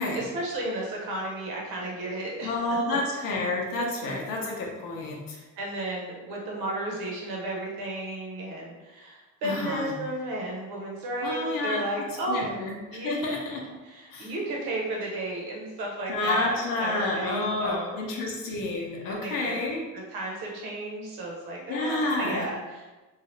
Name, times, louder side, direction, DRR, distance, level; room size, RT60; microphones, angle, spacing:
voice 1, 0.0-2.5 2.9-3.3 3.7-4.2 5.3-12.5 12.9-13.3 13.8-18.0 19.1-19.6 20.1-23.0, right 1 dB, 85° right, -2 dB, 0.9 m, -34 dB
voice 2, 2.4-5.4 9.4-9.9 11.2-13.8 14.1-14.3 16.1-19.8 21.7-22.5, left 2 dB, 70° left, -1 dB, 0.7 m, -29 dB
2.7 x 2.4 x 3.1 m, 1.2 s
cardioid pair, 115°, 35 cm